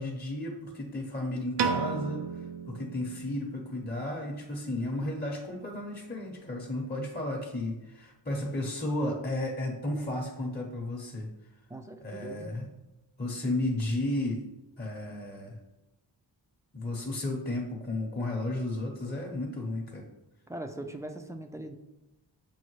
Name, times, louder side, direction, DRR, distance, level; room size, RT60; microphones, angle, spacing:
voice 1, 0.0-11.3 12.0-12.7 13.2-14.5 14.8-15.6 16.7-20.1, left 1 dB, 20° left, -1 dB, 0.7 m, -33 dB
Piano, 1.6-3.8, right 5 dB, 70° right, 0.5 m, -33 dB
voice 2, 11.7-12.6 20.5-21.7, right 1 dB, 5° right, 5 dB, 0.4 m, -41 dB
6.3 x 2.1 x 3.1 m, 0.97 s
cardioid pair, 45°, 44 cm